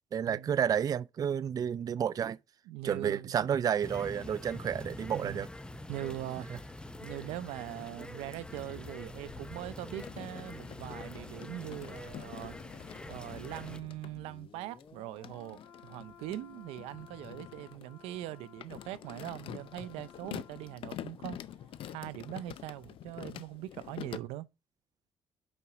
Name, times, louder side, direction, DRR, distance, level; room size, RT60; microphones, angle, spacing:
voice 1, 0.1-2.4 2.8-5.5, right 8 dB, 40° right, 0.4 m, -31 dB
voice 2, 2.7-3.4 5.1-5.5 5.9-6.7 7.0-12.6 13.1-21.4 21.9-24.5, right 15 dB, 90° right, 0.6 m, -41 dB
sound 1, 3.8-13.8, left 1 dB, 10° left, 0.7 m, -45 dB
sound 2, 8.0-22.9 23.2-23.3, left 6 dB, 40° left, 1.3 m, -56 dB
sound 3, 10.0-14.1 14.8-24.2, left 11 dB, 65° left, 0.6 m, -46 dB
5.6 x 5.2 x 6.0 m
cardioid pair, 90°, 10 cm